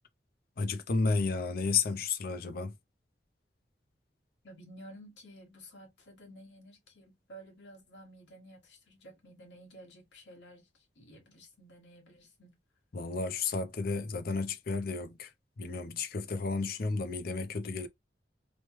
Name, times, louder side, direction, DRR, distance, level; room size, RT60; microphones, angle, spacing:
voice 1, 0.6-2.7 12.9-17.9, left 4 dB, 55° left, 0.5 m, -32 dB
voice 2, 4.4-12.6, right 1 dB, 80° left, 1.3 m, -53 dB
3.1 x 2.1 x 3.0 m
head